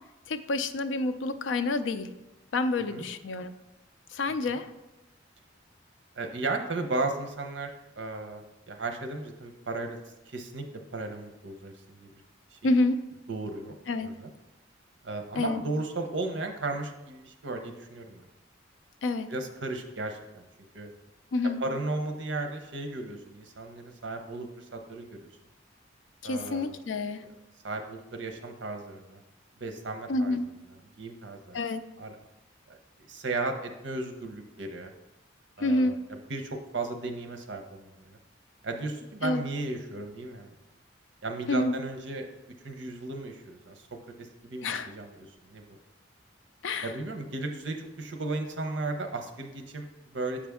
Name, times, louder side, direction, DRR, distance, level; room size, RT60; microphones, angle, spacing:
voice 1, 0.3-2.1 2.5-3.5 4.1-4.7 12.6-13.0 13.9-14.1 15.4-15.6 19.0-19.3 21.3-21.6 26.2-27.2 30.1-30.5 31.5-31.8 35.6-36.0 39.2-39.4 41.5-41.8 44.6-44.9 46.6-46.9, left 2 dB, 70° left, 11 dB, 0.4 m, -28 dB
voice 2, 6.2-7.7 8.0-10.0 10.3-10.6 10.9-12.1 13.3-13.7 14.0-14.3 15.0-18.2 19.3-20.5 20.7-20.9 21.6-25.3 26.2-26.8 27.6-29.2 29.6-30.4 31.0-31.6 32.0-32.2 33.1-34.9 35.6-35.9 36.3-38.2 38.6-40.5 41.2-42.2 42.6-43.7 44.2-45.8 46.8-50.4, right 2 dB, 65° right, 5 dB, 0.8 m, -35 dB
7.3 x 5.1 x 3.5 m, 0.96 s
head